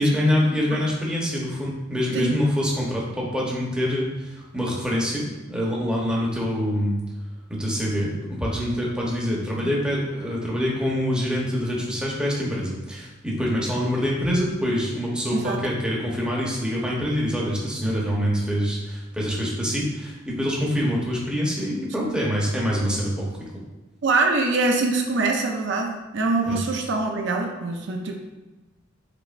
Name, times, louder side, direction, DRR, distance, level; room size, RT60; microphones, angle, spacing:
voice 1, 0.0-7.0 7.5-23.5 26.5-26.6, equal, 5° right, -4 dB, 0.9 m, -25 dB
voice 2, 24.0-28.1, right 3 dB, 65° right, 2 dB, 0.5 m, -24 dB
5.0 x 4.2 x 2.5 m, 1.2 s
head